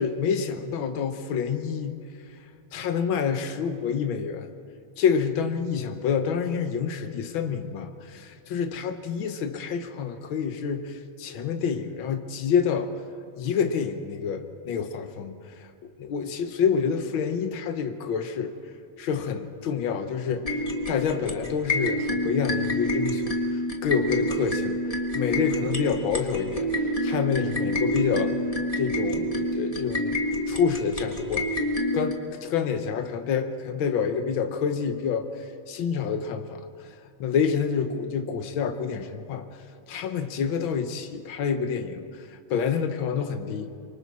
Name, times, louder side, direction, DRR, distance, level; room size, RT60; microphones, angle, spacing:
voice 1, 0.0-2.0 2.7-4.5 5.0-12.9 13.4-18.5 19.0-20.6 20.9-24.8 25.1-26.7 27.0-28.4 28.8-30.2 30.5-31.5 31.9-36.9 37.2-39.4 39.9-43.7, left 6 dB, 70° left, 8 dB, 1.2 m, -28 dB
sound 1, 20.4-32.1, equal, 50° left, 0.4 m, -28 dB
26.5 x 24.0 x 4.2 m, 2.5 s
omnidirectional pair, 3.4 m